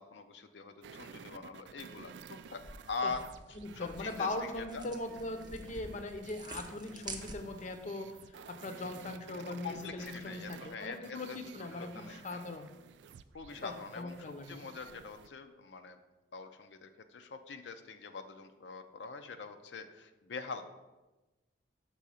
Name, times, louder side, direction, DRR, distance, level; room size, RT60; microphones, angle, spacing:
voice 1, 0.0-2.1 2.5-2.6 2.9-3.2 3.7-4.8 9.4-12.4 13.3-16.0 16.3-20.6, left 4 dB, 80° left, 7 dB, 0.5 m, -43 dB
sound 1, 0.8-15.3, right 6 dB, 75° right, 0.3 m, -53 dB
sound 2, 2.5-7.8, right 2 dB, 25° right, 0.6 m, -49 dB
voice 2, 3.6-12.7 13.6-14.7, left 2 dB, 45° left, 7 dB, 0.7 m, -40 dB
6.2 x 3.7 x 5.6 m, 1.1 s
head